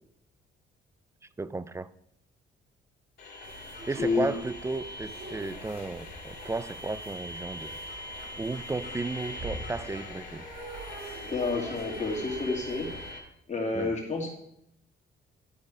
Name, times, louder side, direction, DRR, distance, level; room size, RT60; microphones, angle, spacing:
voice 1, 1.4-1.9 3.9-7.8 8.4-10.5 13.7-13.9, right 3 dB, 15° right, 0.4 m, -34 dB
sound 1, 3.2-13.2, left 1 dB, 55° left, 2.4 m, -42 dB
sound 2, 3.4-13.1, right 2 dB, 55° right, 1.9 m, -45 dB
voice 2, 11.3-12.9 13.5-14.3, left 3 dB, 35° left, 2.4 m, -29 dB
12.0 x 4.0 x 4.8 m
cardioid pair, 90°, 20 cm